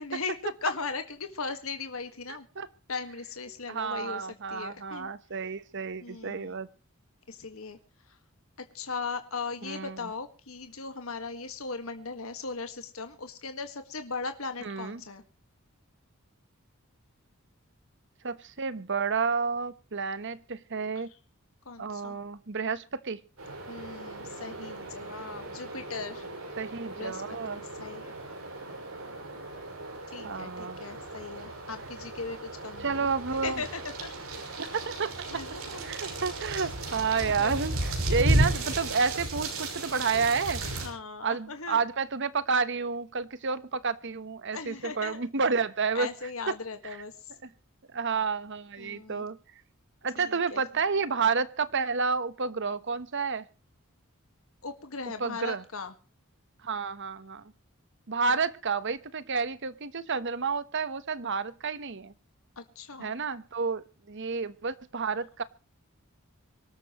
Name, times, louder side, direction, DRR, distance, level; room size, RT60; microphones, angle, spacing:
voice 1, 0.0-2.5 2.9-5.1 6.0-6.5 7.3-7.8 8.7-15.2 21.7-22.2 23.7-26.3 27.0-28.2 30.1-33.1 33.4-34.1 35.3-36.0 36.5-36.6 37.4-37.6 40.8-41.8 44.5-45.2 45.9-47.1 48.8-49.3 50.2-50.6 54.6-55.9 62.6-63.1, left 4 dB, 75° left, 7 dB, 1.8 m, -38 dB
voice 2, 2.3-2.7 3.7-6.7 9.6-10.1 14.6-15.0 18.2-21.1 21.8-23.2 26.6-27.6 30.2-30.8 32.8-33.6 34.6-35.1 35.8-40.6 41.2-46.1 46.5-46.6 47.9-49.4 50.0-53.4 55.2-55.6 56.6-57.5 58.1-62.1 63.0-65.4, right 5 dB, 60° right, 14 dB, 1.1 m, -30 dB
sound 1, 23.4-40.9, right 1 dB, 85° right, 5.9 m, -34 dB
25.0 x 13.0 x 3.1 m, 0.34 s
head